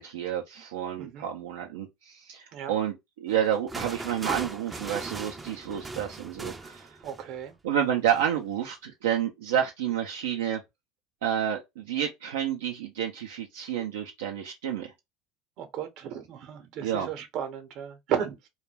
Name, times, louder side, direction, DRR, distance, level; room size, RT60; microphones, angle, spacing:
voice 1, 0.0-7.0 7.6-10.6 11.2-14.9 16.8-17.1, right 9 dB, 85° right, 0.4 m, -30 dB
voice 2, 1.0-1.3 2.5-2.7 7.0-7.5 15.6-18.5, right 8 dB, 60° right, 0.7 m, -34 dB
sound 1, 3.3-7.4 8.1-8.3, right 3 dB, 20° right, 0.4 m, -38 dB
2.2 x 2.2 x 3.2 m
hypercardioid pair, 90°, 0 cm